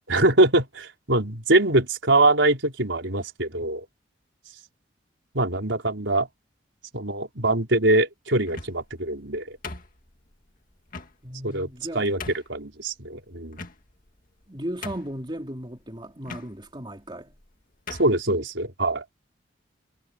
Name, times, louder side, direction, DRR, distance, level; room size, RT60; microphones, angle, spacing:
voice 1, 0.1-3.9 5.3-6.3 6.9-9.6 11.4-11.7 11.9-12.2 12.5-13.6 18.0-19.0, right 2 dB, 80° right, 4.7 m, -23 dB
sound 1, 8.4-8.9 9.6-10.3 10.9-11.1 11.7-11.8 12.2-12.5 13.5-14.1 14.4-14.5 14.8-15.3 16.2-16.5 17.3-17.5 17.9-18.2, left 3 dB, 50° left, 2.1 m, -38 dB
voice 2, 11.2-12.1 14.5-17.4, equal, 25° right, 3.3 m, -36 dB
head